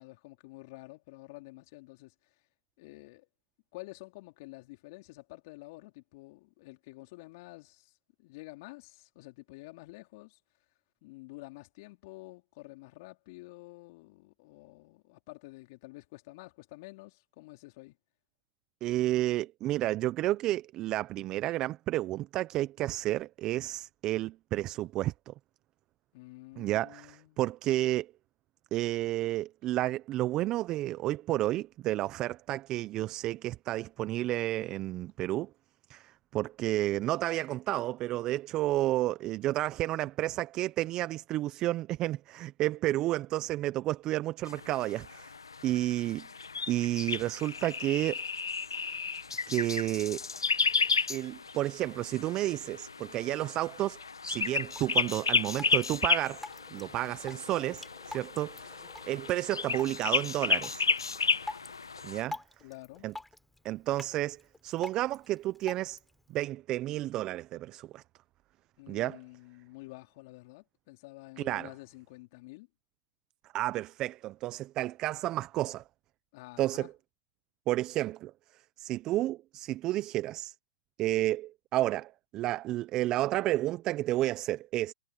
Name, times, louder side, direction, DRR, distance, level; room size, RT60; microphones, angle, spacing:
voice 1, 0.0-2.3 2.8-3.3 3.7-10.4 11.0-18.0 26.1-27.4 62.6-63.1 68.8-72.7 76.3-76.9, left 23 dB, 45° left, 4.2 m, -49 dB
voice 2, 18.8-25.3 26.6-28.1 28.7-35.5 35.9-45.3 45.6-46.3 46.7-48.2 49.5-50.2 51.1-54.0 54.3-56.4 56.7-58.8 59.1-60.9 62.0-62.4 63.0-63.1 63.6-66.0 66.3-68.0 68.9-69.2 71.4-71.7 73.5-75.8 76.6-76.9 77.7-78.3 78.8-80.5 81.0-84.9, right 15 dB, 30° right, 0.8 m, -31 dB
sound 1, 44.5-62.2, left 5 dB, 90° left, 1.1 m, -33 dB
Drip, 54.4-66.4, left 2 dB, 5° left, 3.6 m, -48 dB
hypercardioid pair, 125°, 2 cm